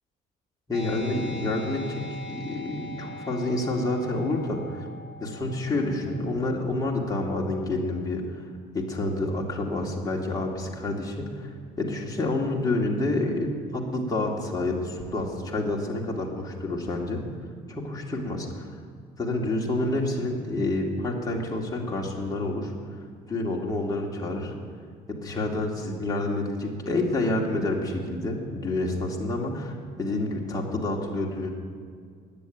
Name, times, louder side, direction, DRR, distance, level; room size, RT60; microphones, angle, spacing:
voice 1, 0.7-2.0 2.3-4.9 5.2-8.4 8.7-17.2 17.7-18.7 19.2-22.7 23.3-24.5 25.1-31.5, left 2 dB, 20° left, -1 dB, 2.2 m, -28 dB
sound 1, 0.7-7.8, left 2 dB, 5° right, 2.6 m, -43 dB
10.0 x 8.5 x 9.1 m, 2.1 s
cardioid pair, 110°, 17 cm